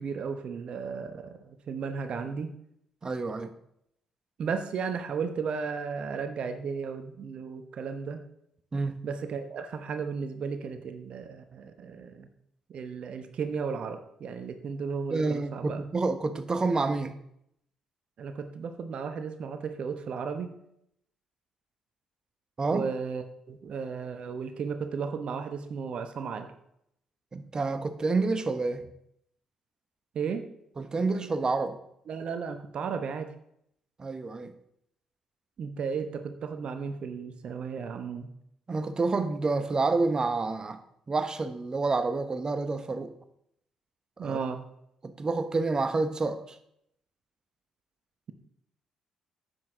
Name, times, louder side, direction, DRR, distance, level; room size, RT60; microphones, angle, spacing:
voice 1, 0.0-2.5 4.4-8.2 9.0-12.3 12.7-15.8 18.2-20.5 22.7-26.5 30.1-30.4 32.1-33.3 35.6-38.3 44.2-44.6, right 5 dB, 55° right, 8 dB, 1.0 m, -34 dB
voice 2, 3.0-3.5 8.7-9.0 15.1-17.2 22.6-22.9 27.3-28.8 30.8-31.8 34.0-34.6 38.7-40.8 41.1-43.1 44.2-44.4 45.0-46.6, right 3 dB, 35° right, 11 dB, 1.1 m, -28 dB
10.5 x 8.2 x 3.8 m, 0.74 s
hypercardioid pair, 45°, 2 cm